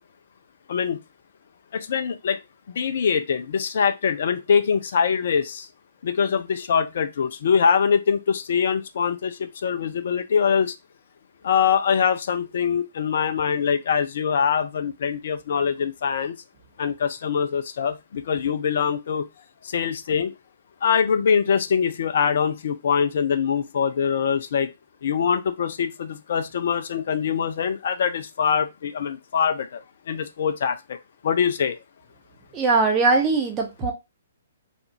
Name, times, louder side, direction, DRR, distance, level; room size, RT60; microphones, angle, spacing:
voice 1, 1.7-2.4 2.7-5.7 6.0-10.7 11.4-16.4 16.8-19.3 19.6-20.3 20.8-24.7 25.0-29.8 30.1-31.0 31.2-31.8, left 7 dB, 50° left, 0.4 m, -23 dB
voice 2, 32.5-33.9, right 3 dB, 20° right, 0.9 m, -20 dB
3.4 x 2.3 x 2.8 m
figure-of-eight pair, 120°, 0 cm